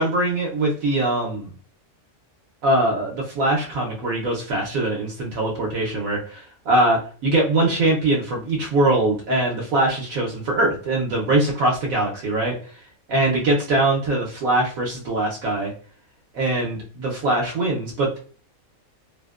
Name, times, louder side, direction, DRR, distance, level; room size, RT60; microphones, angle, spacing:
voice 1, 0.0-1.5 2.6-12.6 13.1-15.7 16.3-18.2, right 2 dB, 80° right, -2 dB, 1.1 m, -22 dB
2.7 x 2.1 x 2.2 m, 0.41 s
omnidirectional pair, 1.4 m